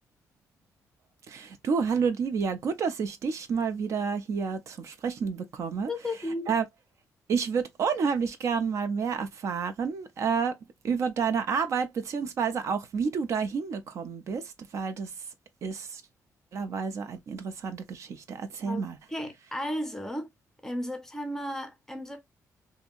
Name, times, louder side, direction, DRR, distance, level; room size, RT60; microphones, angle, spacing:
voice 1, 1.3-5.9 6.5-6.6 7.3-10.6 10.8-15.1 15.6-16.0 16.5-19.0, right 6 dB, 55° right, 0.4 m, -29 dB
voice 2, 5.9-6.6 18.6-20.3 20.6-22.2, left 1 dB, 10° left, 0.6 m, -34 dB
2.7 x 2.6 x 2.3 m
cardioid pair, 155°, 6 cm